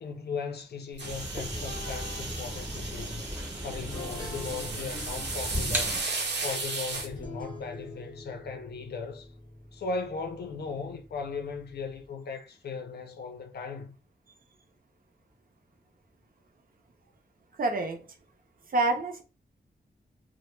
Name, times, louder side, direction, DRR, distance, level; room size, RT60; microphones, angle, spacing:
voice 1, 0.0-3.2 3.6-6.0 6.4-9.3 9.7-14.0, left 4 dB, 70° left, 0.5 m, -37 dB
sound 1, 1.0-6.0, equal, 10° right, 0.6 m, -36 dB
sound 2, 1.0-7.1, right 3 dB, 80° right, 0.8 m, -35 dB
sound 3, 1.4-12.1, left 2 dB, 25° left, 0.8 m, -46 dB
voice 2, 17.6-18.0 18.7-19.2, right 2 dB, 55° right, 0.5 m, -27 dB
2.2 x 2.0 x 3.1 m
wide cardioid pair, 165°, 18 cm